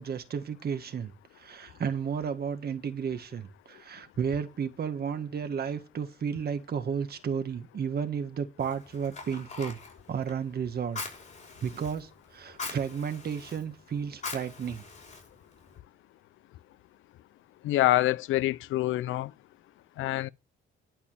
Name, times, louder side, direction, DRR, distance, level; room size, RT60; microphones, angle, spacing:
voice 1, 0.0-9.8 10.1-11.0 11.6-14.8, right 7 dB, 50° right, 1.7 m, -33 dB
Fire, 8.6-15.8, left 4 dB, 35° left, 5.3 m, -43 dB
voice 2, 17.6-19.3 20.0-20.3, left 15 dB, 80° left, 0.5 m, -26 dB
11.0 x 5.5 x 6.8 m
cardioid pair, 90°, 20 cm